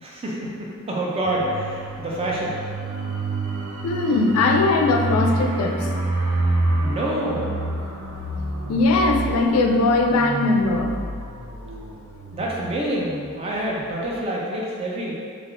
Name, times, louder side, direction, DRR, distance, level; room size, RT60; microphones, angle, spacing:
voice 1, 0.0-2.6 6.8-7.5 12.3-15.1, right 1 dB, 25° right, -4 dB, 0.4 m, -27 dB
sound 1, 1.2-13.6 13.9-14.1, right 2 dB, 85° right, 0.5 m, -28 dB
voice 2, 3.8-5.9 8.7-11.0, left 3 dB, 75° left, 3 dB, 0.3 m, -20 dB
3.3 x 2.4 x 2.5 m, 2.2 s
head